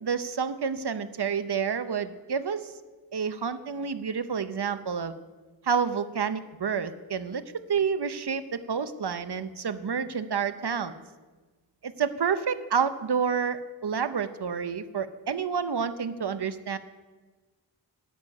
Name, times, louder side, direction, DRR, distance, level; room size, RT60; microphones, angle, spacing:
voice 1, 0.0-2.7 3.1-5.1 5.6-7.4 7.7-10.9 11.8-16.8, right 6 dB, 65° right, 12 dB, 0.8 m, -29 dB
13.5 x 6.5 x 9.7 m, 1.3 s
wide cardioid pair, 45°, 44 cm